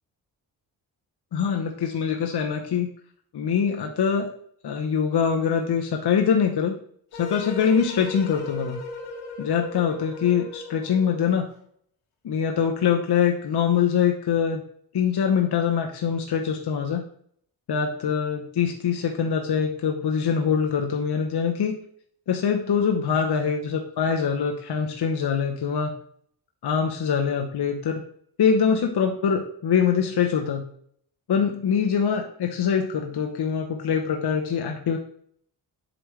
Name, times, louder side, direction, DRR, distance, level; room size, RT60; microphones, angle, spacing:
voice 1, 1.3-2.9 3.3-4.3 4.6-6.8 7.2-8.8 9.4-11.4 12.2-14.6 14.9-17.0 17.7-21.8 22.3-25.9 26.6-28.0 28.4-30.6 31.3-35.0, left 7 dB, 55° left, 3 dB, 0.9 m, -23 dB
sound 1, 7.1-11.4, left 2 dB, 85° left, 1.2 m, -37 dB
7.7 x 5.2 x 3.2 m, 0.63 s
supercardioid pair, 45°, 48 cm